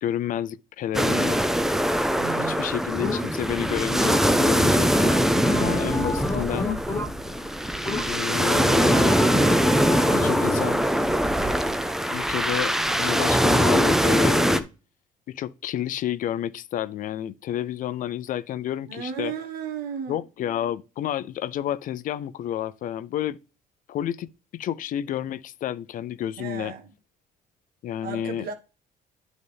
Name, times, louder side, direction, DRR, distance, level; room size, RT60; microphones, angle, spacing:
voice 1, 0.0-1.4 2.4-5.0 5.6-6.7 8.1-9.2 10.1-10.8 12.1-14.7 15.3-19.3 20.1-23.4 23.9-24.3 24.5-26.7 27.8-28.5, left 11 dB, 60° left, 0.5 m, -30 dB
sound 1, 0.9-14.6, equal, 5° right, 0.5 m, -22 dB
voice 2, 2.2-2.8 5.4-5.9 18.8-20.2 26.4-26.9 28.0-28.5, right 7 dB, 85° right, 1.5 m, -34 dB
sound 2, 3.0-3.5 4.0-4.5 5.0-7.4 7.9-8.4 8.8-10.8, left 2 dB, 15° left, 1.3 m, -29 dB
12.0 x 4.0 x 3.4 m
cardioid pair, 130°, 16 cm